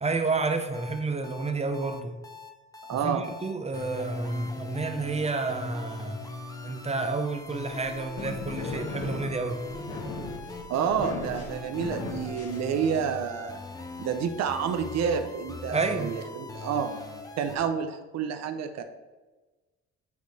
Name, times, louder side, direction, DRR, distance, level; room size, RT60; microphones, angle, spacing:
voice 1, 0.0-2.1 2.9-6.3 6.6-9.6 15.7-16.2, right 3 dB, 20° right, 6 dB, 0.6 m, -30 dB
sound 1, 0.7-17.6, left 2 dB, 10° left, 0.8 m, -41 dB
voice 2, 2.9-3.2 10.7-13.6 14.0-17.0 17.4-18.8, right 7 dB, 60° right, 7 dB, 0.6 m, -29 dB
sound 2, 7.8-13.2, left 3 dB, 55° left, 1.2 m, -38 dB
8.5 x 3.2 x 4.0 m, 1.2 s
cardioid pair, 90°, 30 cm